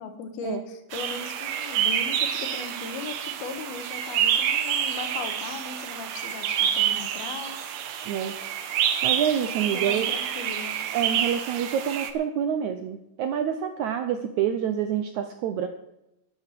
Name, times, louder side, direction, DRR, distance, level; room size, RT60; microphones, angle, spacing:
voice 1, 0.0-7.6 9.7-10.8, left 4 dB, 80° left, 7 dB, 3.3 m, -38 dB
sound 1, 0.9-12.1, right 9 dB, 70° right, 2.4 m, -28 dB
voice 2, 8.1-8.4 9.0-10.1 10.9-15.7, right 9 dB, 85° right, 8 dB, 1.6 m, -27 dB
11.5 x 10.0 x 7.6 m, 0.89 s
omnidirectional pair, 4.4 m